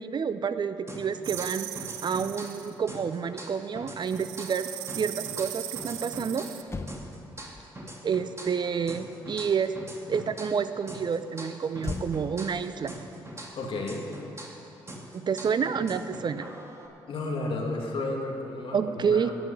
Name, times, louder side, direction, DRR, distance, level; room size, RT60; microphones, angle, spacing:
voice 1, 0.0-1.7 2.0-6.5 8.0-9.7 10.1-12.9 15.1-16.5 18.7-19.3, right 6 dB, 45° right, 12 dB, 0.7 m, -29 dB
sound 1, 0.9-2.6 2.9-6.6 6.9-10.6 10.9-14.6 14.9-16.9, right 1 dB, 25° right, 2.6 m, -43 dB
sound 2, 1.2-2.7 4.0-6.6, right 15 dB, 90° right, 0.4 m, -38 dB
Motor vehicle (road), 6.6-10.2 11.8-14.4 14.7-14.9, left 3 dB, 25° left, 0.9 m, -42 dB
voice 2, 13.5-14.1 17.0-19.3, left 2 dB, 60° left, 0 dB, 2.5 m, -32 dB
15.0 x 6.1 x 9.2 m, 2.8 s
hypercardioid pair, 50°, 10 cm